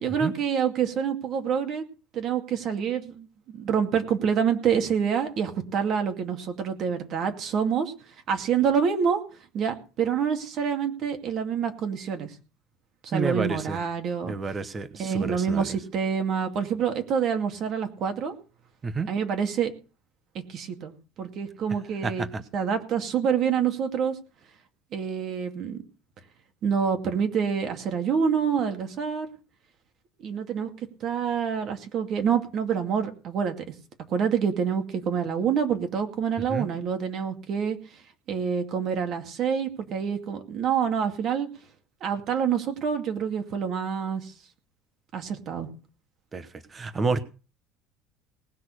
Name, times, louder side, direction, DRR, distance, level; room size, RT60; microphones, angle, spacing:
voice 1, 0.0-1.8 2.1-7.9 8.3-9.2 9.5-12.3 13.0-14.3 14.9-18.3 19.1-19.7 20.3-22.3 22.5-24.2 24.9-25.8 26.6-29.3 30.2-30.7 31.0-33.5 34.1-37.8 38.3-41.5 42.0-44.3 45.1-45.7, right 7 dB, 40° right, 6 dB, 2.3 m, -27 dB
voice 2, 13.1-13.8 14.2-15.7 18.8-19.1 22.0-22.1 36.5-36.7 46.3-46.5 46.7-47.2, right 4 dB, 20° right, 12 dB, 1.0 m, -29 dB
19.0 x 6.4 x 6.3 m, 0.35 s
cardioid pair, 170°, 0 cm